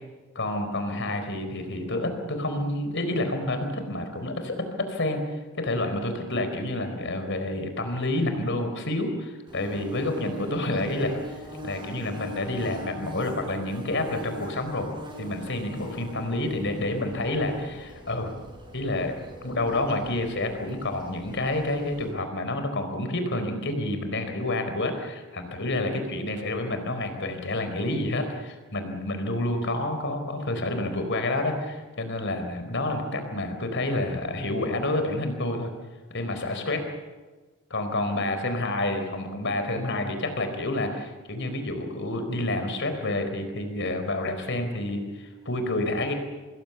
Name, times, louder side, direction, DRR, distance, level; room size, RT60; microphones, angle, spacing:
voice 1, 0.3-5.2 5.6-11.2 11.6-18.4 18.7-19.1 19.4-35.7 36.1-36.8 37.7-46.1, left 1 dB, 55° left, 7 dB, 4.4 m, -29 dB
Bird / Buzz, 9.5-22.1, equal, 20° right, 7.3 m, -42 dB
26.5 x 20.5 x 7.0 m, 1.3 s
head